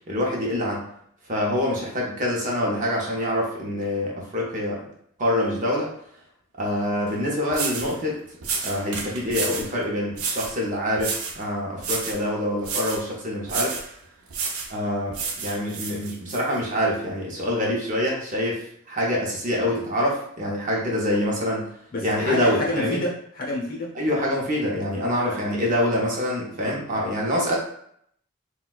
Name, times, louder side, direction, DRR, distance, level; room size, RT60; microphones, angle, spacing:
voice 1, 0.1-0.8 1.3-4.9 5.2-5.9 6.6-8.2 8.6-13.8 14.7-21.7 22.0-23.0 24.0-27.6, left 1 dB, 40° right, -2 dB, 0.7 m, -25 dB
sound 1, 7.1-7.2 7.5-7.9 8.4-9.7 10.1-10.6 11.0-11.4 11.8-12.2 12.6-13.0 13.5-13.9 14.3-14.7 15.1-16.4, right 5 dB, 90° right, 0.6 m, -30 dB
voice 2, 21.9-23.9 24.9-25.5, left 2 dB, 45° left, -2 dB, 0.8 m, -29 dB
4.0 x 2.2 x 2.4 m, 0.67 s
head